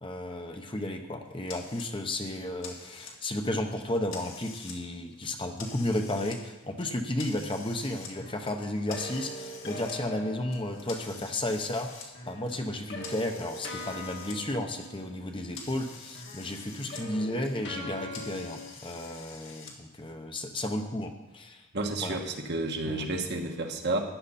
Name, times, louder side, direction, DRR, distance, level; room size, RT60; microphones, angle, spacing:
voice 1, 0.0-21.7 22.0-22.2 22.8-23.1, left 1 dB, 25° left, 5 dB, 0.9 m, -33 dB
sound 1, 1.5-1.9 2.3-3.4 3.8-4.8 5.1-6.4 6.8-8.1 8.4-9.9 10.5-14.4 14.7-17.0 17.3-19.7, left 5 dB, 80° left, 2.0 m, -47 dB
sound 2, 8.1-11.2 12.1-15.8 16.1-18.7, equal, 55° left, 1.8 m, -43 dB
voice 2, 21.7-24.0, right 2 dB, 55° right, 3 dB, 1.3 m, -31 dB
13.5 x 10.5 x 4.2 m, 1.1 s
head